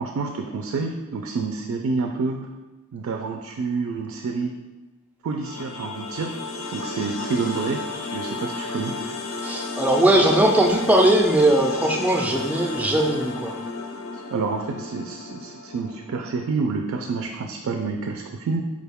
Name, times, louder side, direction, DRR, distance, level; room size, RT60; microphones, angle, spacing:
voice 1, 0.0-2.5 2.9-4.5 5.2-6.4 6.7-9.0 14.1-18.6, right 4 dB, 90° right, 3 dB, 0.3 m, -28 dB
sound 1, 5.4-16.5, left 3 dB, 80° left, 0.4 m, -33 dB
voice 2, 9.4-13.5, right 1 dB, 5° right, 1 dB, 0.3 m, -19 dB
4.7 x 2.2 x 3.5 m, 1.2 s
head